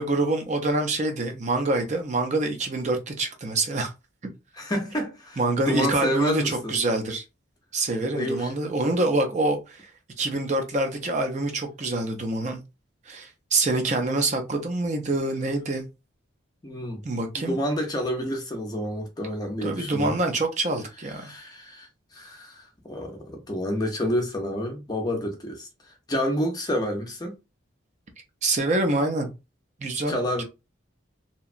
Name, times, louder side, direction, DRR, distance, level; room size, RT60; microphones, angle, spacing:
voice 1, 0.0-3.9 4.2-4.3 5.4-7.2 7.7-9.9 10.2-12.6 13.1-15.9 17.0-17.6 19.6-21.3 28.4-29.3 29.8-30.4, right 2 dB, 35° right, 0.5 m, -26 dB
voice 2, 4.5-5.4 5.7-6.7 8.1-8.5 16.6-17.0 17.4-20.1 21.2-25.7 26.1-27.4 30.1-30.4, equal, 20° left, 0.5 m, -29 dB
2.8 x 2.1 x 2.4 m
head